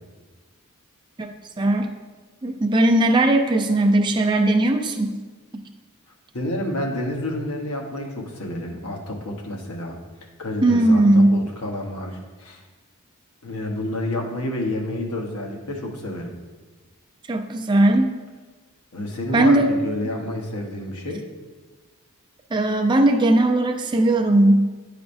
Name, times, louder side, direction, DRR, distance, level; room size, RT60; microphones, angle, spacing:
voice 1, 1.6-1.9 2.4-5.2 10.6-11.4 17.3-18.2 19.3-19.8 22.5-24.6, right 1 dB, 20° right, 3 dB, 0.5 m, -18 dB
voice 2, 6.3-10.0 10.4-12.6 13.4-16.3 18.9-21.2, left 1 dB, 75° left, 1 dB, 1.1 m, -29 dB
9.6 x 5.0 x 2.6 m, 1.3 s
head